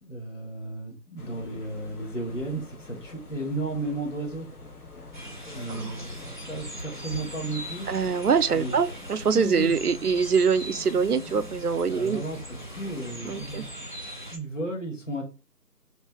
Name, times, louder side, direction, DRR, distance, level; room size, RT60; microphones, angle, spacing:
voice 1, 0.0-4.5 5.5-6.2 6.5-7.9 8.5-8.7 9.3-9.7 11.9-13.9 14.3-15.2, right 1 dB, 50° left, 1.4 m, -34 dB
sound 1, 1.2-13.7, left 2 dB, 65° left, 1.4 m, -46 dB
sound 2, 5.1-14.4, equal, 30° left, 0.8 m, -40 dB
voice 2, 7.9-12.2 13.2-13.6, right 6 dB, 65° right, 0.6 m, -24 dB
3.2 x 2.9 x 4.4 m
figure-of-eight pair, 165°, 49 cm